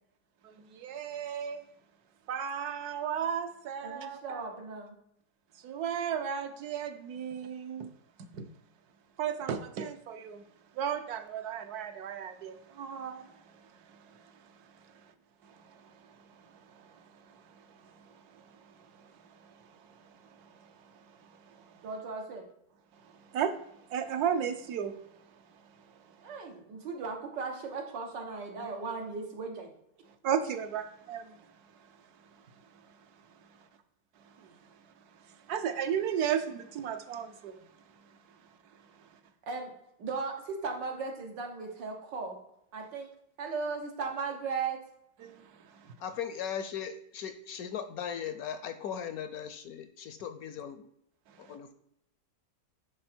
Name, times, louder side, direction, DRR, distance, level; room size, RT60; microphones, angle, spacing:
voice 1, 0.4-1.6 2.3-4.4 5.6-7.9 8.3-8.4 9.2-10.4 10.8-13.4 16.8-17.4 18.3-18.4 19.3-19.6 20.4-20.5 23.3-23.5 23.9-24.9 30.2-31.4 34.4-34.5 35.5-37.6 45.2-45.9, right 8 dB, 65° right, 8 dB, 1.2 m, -34 dB
voice 2, 3.8-5.0 21.8-22.4 26.2-29.7 39.5-39.7 40.0-42.4 42.7-43.1 43.4-44.8, right 4 dB, 85° right, 2 dB, 2.0 m, -37 dB
voice 3, 46.0-50.8 51.4-51.7, left 8 dB, 70° left, 10 dB, 1.0 m, -38 dB
10.5 x 4.2 x 4.4 m, 0.77 s
omnidirectional pair, 1.9 m